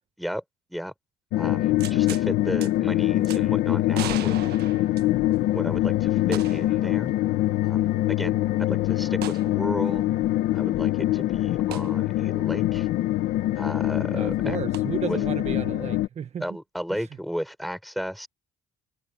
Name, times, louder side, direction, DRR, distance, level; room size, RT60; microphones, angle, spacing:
sound 1, 1.3-16.1, left 15 dB, 80° left, 1.9 m, -24 dB
voice 1, 1.4-4.4 4.9-5.0 5.5-7.1 7.6-10.0 10.5-12.9 13.5-14.6 15.0-15.2 16.4-18.3, equal, ahead, 7.3 m, -34 dB
sound 2, 1.8-2.3 2.6-2.7 3.2-3.4 3.9-5.4 6.3-6.8 7.1-7.2 9.2-9.5 11.7-11.9 14.7-14.8, right 13 dB, 70° right, 1.5 m, -37 dB
voice 2, 14.1-16.4 16.9-17.0, right 7 dB, 40° right, 1.3 m, -33 dB
cardioid pair, 110°, 17 cm